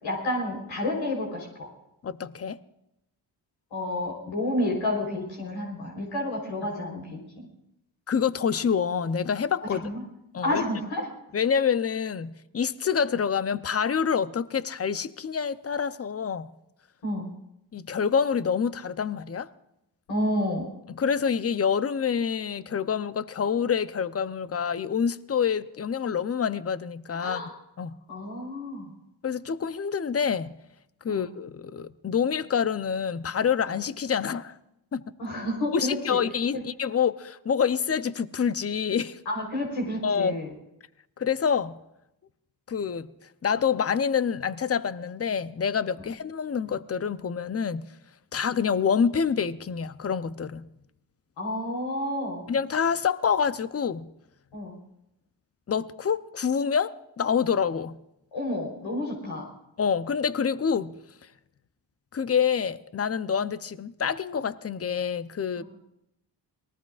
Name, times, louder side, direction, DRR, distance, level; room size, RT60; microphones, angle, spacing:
voice 1, 0.0-1.7 3.7-7.5 9.7-10.0 10.4-11.1 17.0-17.3 20.1-20.7 27.1-27.5 28.1-28.9 31.1-31.2 35.2-36.2 36.5-36.6 39.3-40.5 51.4-52.4 54.5-54.8 58.3-59.5 65.6-65.7, left 1 dB, 75° left, 4.2 m, -30 dB
voice 2, 2.0-2.6 8.1-9.8 10.3-10.6 11.3-16.5 17.7-19.5 21.0-27.4 27.8-27.9 29.2-30.5 31.0-34.5 34.9-35.0 35.7-39.2 40.0-40.4 41.2-41.8 42.7-43.1 43.4-47.8 48.3-50.6 52.5-54.1 55.7-57.9 59.8-60.9 62.1-65.6, left 7 dB, 30° left, 0.8 m, -27 dB
29.0 x 19.0 x 2.5 m
supercardioid pair, 50°, 46 cm